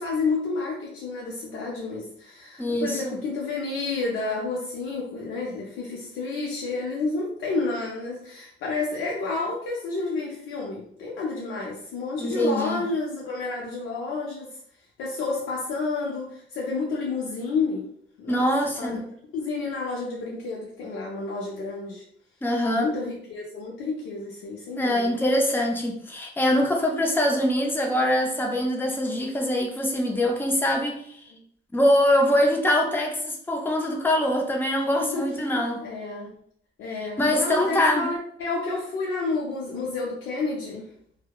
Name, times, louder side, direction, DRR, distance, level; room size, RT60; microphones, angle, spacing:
voice 1, 0.0-14.6 15.0-17.9 18.2-18.5 18.8-19.0 19.3-22.0 22.7-25.2 31.3-31.4 35.0-35.3 35.8-36.4 36.8-40.9, left 3 dB, 85° left, -3 dB, 0.5 m, -30 dB
voice 2, 2.6-3.2 12.2-12.8 18.3-19.0 22.4-22.9 24.8-31.2 31.7-35.8 37.2-38.1, left 1 dB, 10° left, 1 dB, 0.5 m, -23 dB
2.7 x 2.0 x 2.2 m, 0.66 s
cardioid pair, 90°, 20 cm